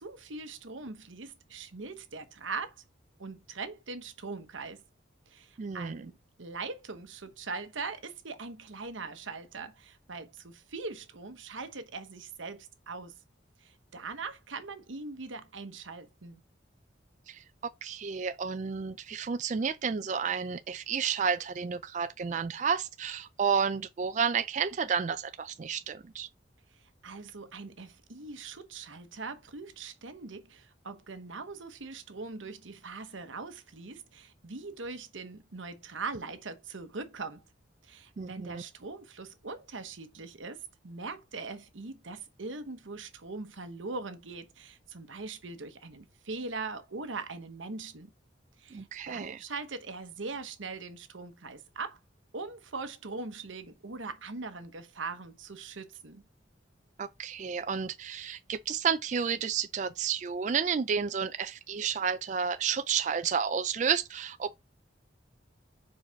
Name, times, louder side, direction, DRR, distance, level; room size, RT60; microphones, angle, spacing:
voice 1, 0.0-2.8 3.2-4.8 5.3-6.1 6.4-13.2 13.6-16.4 26.7-37.4 37.8-48.1 48.6-52.0 52.3-56.2, right 4 dB, 90° right, 1.1 m, -41 dB
voice 2, 5.6-6.0 17.3-26.3 38.2-38.6 48.7-49.4 57.0-64.6, right 6 dB, 40° right, 0.3 m, -31 dB
4.8 x 4.7 x 5.6 m
head